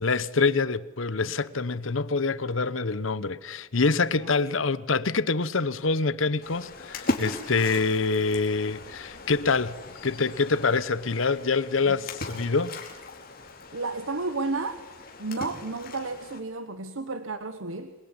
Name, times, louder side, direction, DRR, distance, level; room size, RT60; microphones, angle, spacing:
voice 1, 0.0-12.8, left 4 dB, 75° left, 1.0 m, -26 dB
Splash splatter, 6.4-16.4, left 2 dB, 50° left, 4.3 m, -38 dB
voice 2, 13.7-14.8 15.2-17.9, right 3 dB, 85° right, 1.3 m, -32 dB
27.5 x 22.0 x 9.8 m
head